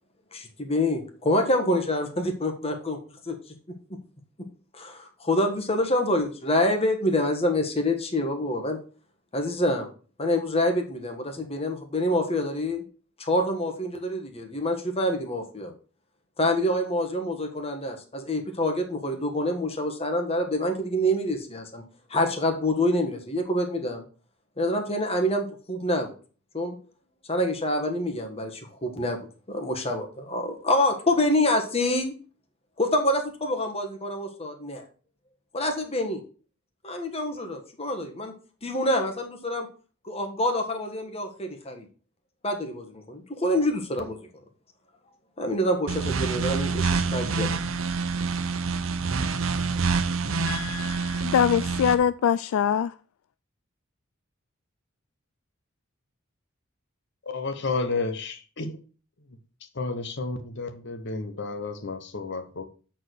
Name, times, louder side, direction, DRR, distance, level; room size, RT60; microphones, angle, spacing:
voice 1, 0.3-3.0 3.3-3.4 3.9-4.0 4.7-8.8 9.3-9.9 10.2-12.8 13.2-15.7 16.4-21.8 22.1-24.0 24.6-26.1 26.5-26.7 27.3-29.2 29.5-32.1 32.8-34.8 35.5-36.2 36.8-38.3 38.6-39.7 40.0-41.9 42.4-44.2 45.4-47.5, left 1 dB, 30° left, 1.4 m, -26 dB
sound 1, 45.9-51.9, right 4 dB, 75° right, 0.8 m, -27 dB
voice 2, 50.5-52.9, left 8 dB, 80° left, 0.3 m, -24 dB
voice 3, 57.3-58.8 59.7-62.7, left 3 dB, 60° left, 1.1 m, -31 dB
7.4 x 4.5 x 6.3 m
head